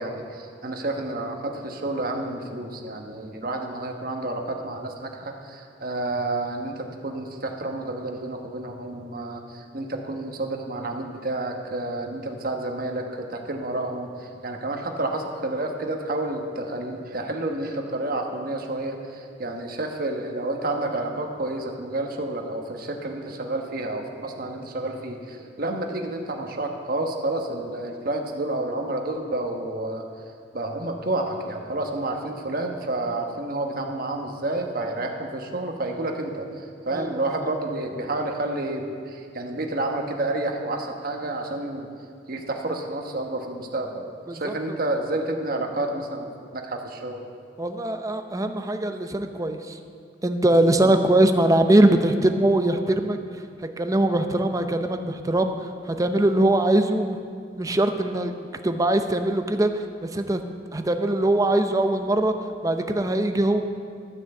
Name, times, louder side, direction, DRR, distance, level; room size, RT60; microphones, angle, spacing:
voice 1, 0.0-30.0 30.5-41.9 42.3-47.2 50.8-50.9, right 2 dB, 55° right, 2 dB, 1.3 m, -30 dB
voice 2, 47.6-49.8 50.2-53.2 53.6-57.2 57.6-58.3 58.6-60.4 60.7-62.3 62.6-63.6, right 1 dB, 20° right, 7 dB, 0.6 m, -22 dB
13.0 x 6.2 x 7.8 m, 2.3 s
head